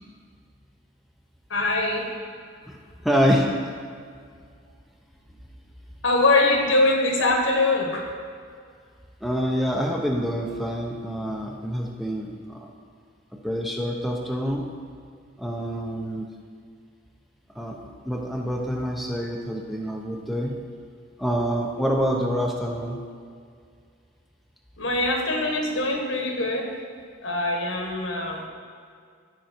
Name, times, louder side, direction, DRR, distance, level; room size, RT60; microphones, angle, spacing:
voice 1, 1.5-2.1 6.0-8.0 24.8-26.7 27.2-28.5, left 2 dB, 80° left, 1 dB, 1.5 m, -23 dB
voice 2, 3.0-3.5 9.2-12.7 13.4-14.6 15.4-16.3 17.5-20.6 21.2-23.0, equal, ahead, 0 dB, 0.7 m, -26 dB
14.0 x 5.3 x 4.5 m, 2.1 s
head